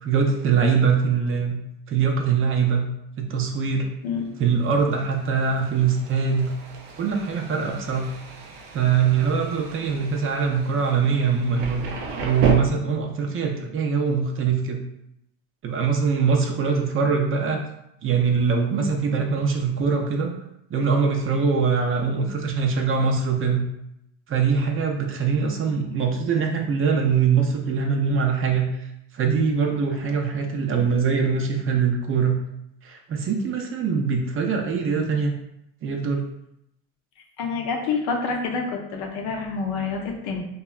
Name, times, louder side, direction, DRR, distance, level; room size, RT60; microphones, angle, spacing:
voice 1, 0.0-1.6 1.9-2.9 3.2-3.9 4.4-6.5 7.0-8.1 8.7-11.9 12.2-14.8 15.6-17.6 18.0-20.3 20.7-23.6 24.3-28.7 29.1-32.4 32.8-35.4 35.8-36.2, right 5 dB, 35° right, 2 dB, 0.5 m, -22 dB
Thunder, 4.4-12.5, right 4 dB, 90° right, 0.5 m, -34 dB
voice 2, 37.4-40.4, left 4 dB, 75° left, 2 dB, 0.6 m, -27 dB
2.7 x 2.3 x 2.3 m, 0.79 s
supercardioid pair, 90°, 37 cm